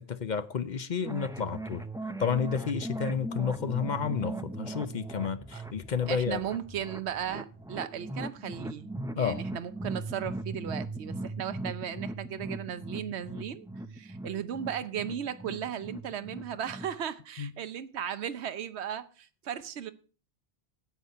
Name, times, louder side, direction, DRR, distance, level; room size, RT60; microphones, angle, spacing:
voice 1, 0.0-1.8 2.2-6.4 9.2-9.4 17.4-17.5, left 6 dB, 50° left, 0.7 m, -31 dB
sound 1, 1.0-17.0, right 2 dB, 5° right, 0.3 m, -39 dB
voice 2, 6.1-13.7 13.9-19.9, right 9 dB, 85° right, 1.0 m, -36 dB
9.3 x 8.0 x 5.6 m
omnidirectional pair, 1.1 m